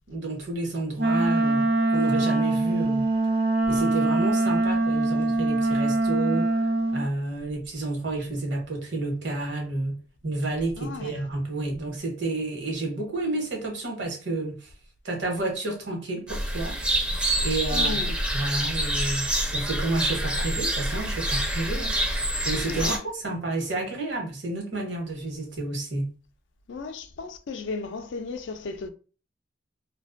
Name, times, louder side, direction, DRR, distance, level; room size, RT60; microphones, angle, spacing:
voice 1, 0.1-3.1 3.7-14.7 15.0-16.8 17.4-18.0 18.3-26.1, right 2 dB, 75° right, 1.0 m, -30 dB
Wind instrument woodwind instrument, 1.0-7.1, right 2 dB, 60° right, 0.6 m, -23 dB
voice 2, 10.8-11.3 17.7-18.2 22.6-23.0 26.7-28.9, left 4 dB, 85° left, 0.4 m, -35 dB
sound 1, 16.3-23.0, right 1 dB, 5° right, 0.4 m, -27 dB
2.4 x 2.2 x 2.5 m
head